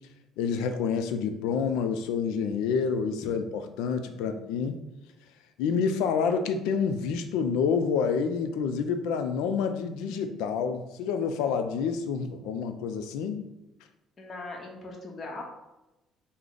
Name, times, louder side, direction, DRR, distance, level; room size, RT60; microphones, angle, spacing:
voice 1, 0.4-4.8 5.6-13.5, left 6 dB, 85° left, 8 dB, 0.3 m, -28 dB
voice 2, 14.2-15.4, left 2 dB, 45° left, 0 dB, 0.8 m, -41 dB
3.3 x 2.0 x 3.8 m, 0.98 s
supercardioid pair, 75°, 0 cm